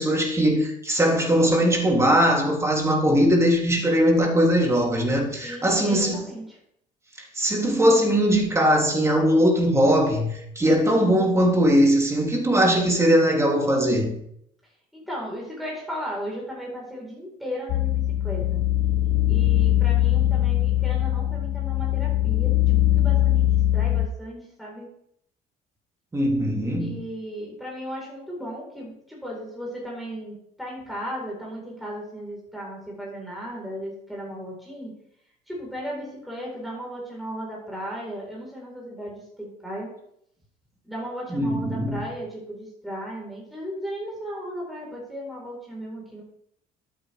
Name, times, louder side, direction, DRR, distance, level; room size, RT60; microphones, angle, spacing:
voice 1, 0.0-6.3 7.3-14.1 26.1-26.9 41.3-42.0, equal, 15° right, 3.0 m, -20 dB
voice 2, 5.4-6.6 14.9-18.6 19.3-24.9 26.8-34.9 35.5-39.9 40.8-46.2, equal, ahead, 4.3 m, -36 dB
sound 1, 17.7-24.1, left 14 dB, 70° left, 0.7 m, -21 dB
13.0 x 8.7 x 3.5 m
cardioid pair, 110°, 17 cm